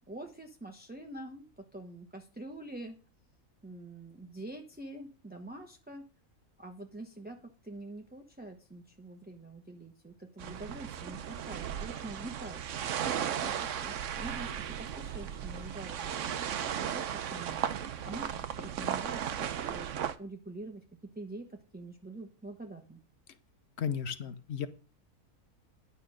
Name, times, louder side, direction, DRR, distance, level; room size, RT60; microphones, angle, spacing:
voice 1, 0.1-3.0 3.6-6.0 6.6-12.6 13.4-17.7 18.0-19.9 20.2-20.8 21.1-23.0, right 2 dB, 10° right, 3 dB, 0.8 m, -45 dB
sound 1, 10.4-20.2, right 9 dB, 60° right, 1.0 m, -36 dB
voice 2, 23.8-24.7, left 7 dB, 50° left, 12 dB, 0.9 m, -34 dB
11.0 x 5.5 x 6.3 m, 0.37 s
omnidirectional pair, 1.6 m